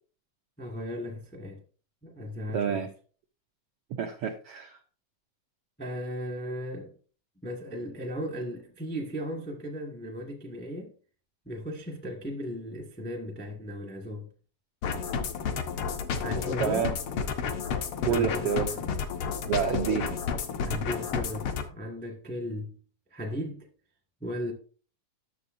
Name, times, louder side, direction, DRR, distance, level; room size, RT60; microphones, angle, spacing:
voice 1, 0.6-1.6 2.0-2.9 5.8-6.9 7.4-10.9 11.4-14.3 16.2-16.9 18.0-18.9 20.6-22.7 23.1-23.7 24.2-24.5, equal, 10° left, 0.6 m, -36 dB
voice 2, 2.5-2.9 4.0-4.8 16.6-16.9 18.1-18.7 19.5-20.2, right 8 dB, 90° right, 1.3 m, -28 dB
sound 1, 14.8-21.7, left 6 dB, 70° left, 1.3 m, -31 dB
11.5 x 6.8 x 2.6 m
omnidirectional pair, 3.5 m